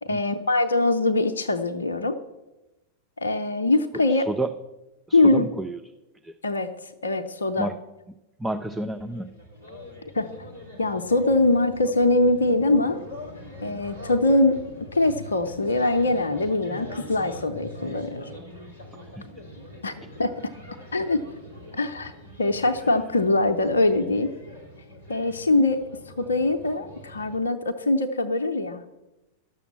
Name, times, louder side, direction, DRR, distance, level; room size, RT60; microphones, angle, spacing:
voice 1, 0.0-2.2 3.2-4.3 5.1-5.5 6.4-7.7 10.1-10.3 10.8-13.0 13.6-14.6 14.9-18.3 19.8-19.9 20.2-20.5 20.9-21.2 21.7-22.1 22.4-24.3 25.1-28.8, left 2 dB, 70° left, 6 dB, 0.6 m, -23 dB
voice 2, 4.1-4.5 5.1-5.8 6.2-6.3 7.6-7.8 8.4-9.3 19.1-19.3, right 2 dB, 5° right, 8 dB, 0.5 m, -30 dB
sound 1, 8.6-27.4, left 1 dB, 85° right, 2.5 m, -43 dB
11.5 x 6.9 x 7.3 m, 1.0 s
figure-of-eight pair, 90°, 0 cm